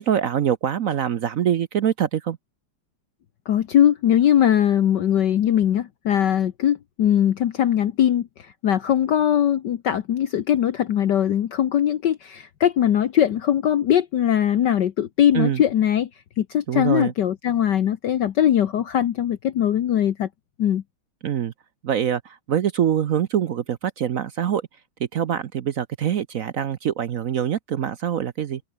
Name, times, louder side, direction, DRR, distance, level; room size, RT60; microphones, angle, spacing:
voice 1, 0.0-2.4 15.3-15.6 16.7-17.1 21.2-21.5 21.8-24.6 25.1-28.6, right 9 dB, 60° right, 0.9 m, -24 dB
voice 2, 3.5-16.1 16.4-20.3 20.6-20.8, left 10 dB, 60° left, 1.6 m, -20 dB
open air
omnidirectional pair, 2.2 m